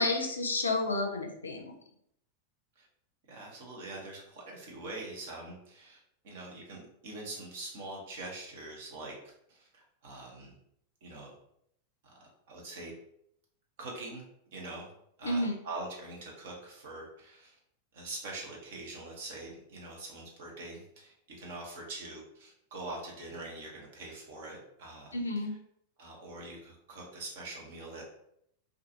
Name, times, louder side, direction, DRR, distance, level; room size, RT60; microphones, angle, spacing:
voice 1, 0.0-1.7 15.2-15.5 25.1-25.5, left 2 dB, 75° left, 4 dB, 0.4 m, -30 dB
voice 2, 3.3-6.0 6.2-10.6 11.0-11.3 12.0-12.9 13.8-14.2 14.5-14.9 15.2-17.6 17.9-25.2 26.0-28.1, right 2 dB, 55° right, -1 dB, 0.8 m, -44 dB
2.5 x 2.3 x 2.7 m, 0.73 s
figure-of-eight pair, 90°, 0 cm